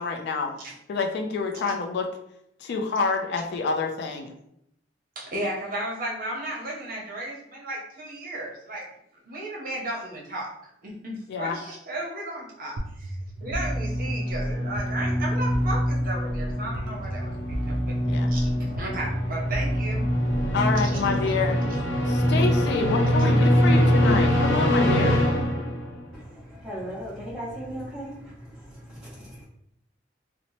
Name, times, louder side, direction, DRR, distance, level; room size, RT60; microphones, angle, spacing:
voice 1, 0.0-0.5 0.9-2.1 2.6-4.3 11.3-11.5 18.1-18.3 20.5-21.6 22.1-25.2, left 4 dB, 60° left, 3 dB, 0.3 m, -27 dB
voice 2, 5.2-8.8 9.2-10.5 10.8-13.2 13.4-17.3 17.7-17.9 18.3-18.5 18.7-20.0 20.7-21.0 21.7-21.8, right 1 dB, 50° right, -2 dB, 0.7 m, -34 dB
sound 1, 12.8-20.8, right 1 dB, 85° right, 0.4 m, -34 dB
sound 2, 13.4-26.1, equal, 80° left, 0.8 m, -24 dB
voice 3, 26.1-29.4, equal, 5° right, -10 dB, 0.6 m, -38 dB
2.8 x 2.0 x 2.9 m, 0.75 s
head